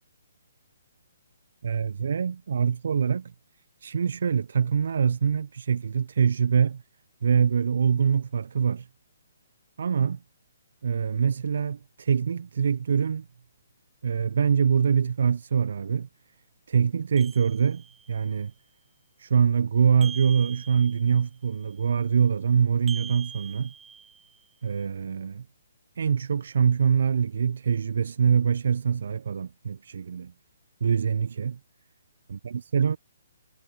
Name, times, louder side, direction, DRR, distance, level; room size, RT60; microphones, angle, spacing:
voice 1, 1.6-3.3 3.8-6.8 7.2-8.9 9.8-10.2 10.8-13.3 14.0-16.1 16.7-18.5 19.2-23.7 24.6-25.4 26.0-30.3 30.8-31.6 32.4-33.0, right 7 dB, 60° right, 0.9 m, -24 dB
sound 1, 17.2-18.2 20.0-21.3 22.9-24.4, right 6 dB, 10° right, 0.7 m, -43 dB
figure-of-eight pair, 130°, 0 cm